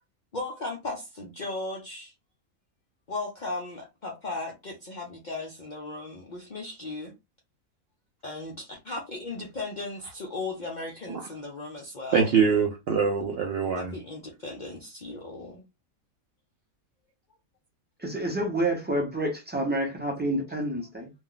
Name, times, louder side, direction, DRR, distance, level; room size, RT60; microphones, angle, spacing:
voice 1, 0.3-2.1 3.1-7.1 8.2-12.3 13.8-15.6, left 2 dB, 55° left, 0.5 m, -36 dB
voice 2, 12.1-13.9, right 6 dB, 60° right, 0.6 m, -24 dB
voice 3, 18.0-21.1, right 1 dB, 10° right, 0.5 m, -28 dB
2.4 x 2.2 x 3.8 m
omnidirectional pair, 1.5 m